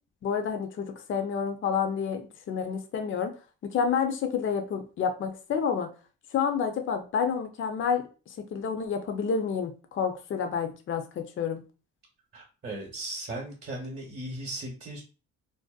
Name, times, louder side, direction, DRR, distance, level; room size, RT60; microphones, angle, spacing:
voice 1, 0.2-3.3 3.6-5.9 6.3-8.0 8.4-11.6, left 6 dB, 40° left, 6 dB, 0.5 m, -29 dB
voice 2, 12.3-15.0, right 1 dB, 35° right, -2 dB, 0.8 m, -37 dB
2.6 x 2.0 x 2.3 m, 0.34 s
cardioid pair, 90°, 30 cm